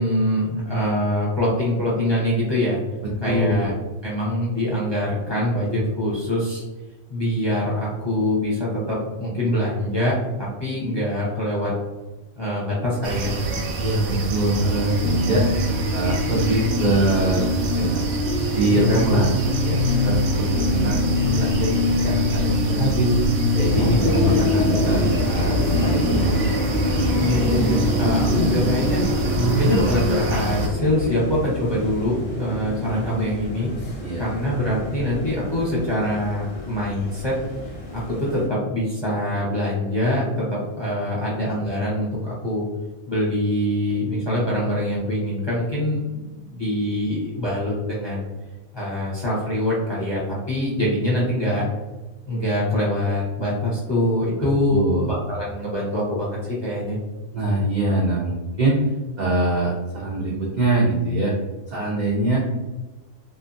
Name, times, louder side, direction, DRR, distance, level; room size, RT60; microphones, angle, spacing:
voice 1, 0.0-2.8 3.2-3.7 4.0-6.6 7.1-11.7 12.3-13.3 23.8-24.3 27.2-29.0 29.6-33.7 34.2-37.4 37.9-42.6 43.1-48.3 48.7-51.7 52.3-57.0, left 1 dB, 25° left, -7 dB, 0.7 m, -24 dB
voice 2, 3.2-3.7 13.8-15.4 15.9-17.5 17.7-18.0 18.5-21.7 22.0-23.1 23.5-26.4 28.2-28.3 34.0-34.4 54.7-55.2 57.3-58.8 59.2-61.3 61.7-62.4, right 1 dB, 60° right, -4 dB, 0.4 m, -23 dB
sound 1, 13.0-30.7, right 3 dB, 85° right, 1.0 m, -26 dB
sound 2, 14.6-29.6, left 2 dB, 85° left, 1.1 m, -25 dB
sound 3, 23.6-38.5, left 2 dB, 60° left, 0.7 m, -27 dB
2.7 x 2.3 x 2.5 m, 1.1 s
omnidirectional pair, 1.4 m